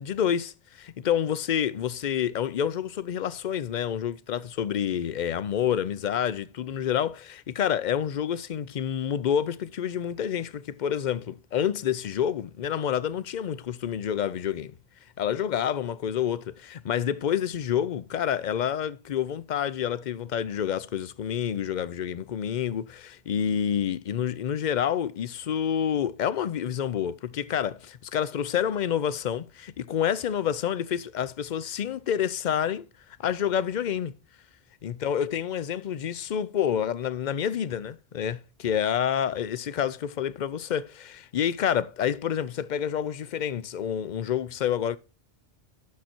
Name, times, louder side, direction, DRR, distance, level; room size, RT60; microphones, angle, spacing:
voice 1, 0.0-14.7 15.2-32.9 33.2-34.1 34.8-45.0, left 9 dB, 55° left, 0.6 m, -28 dB
10.5 x 6.8 x 4.3 m
omnidirectional pair, 1.0 m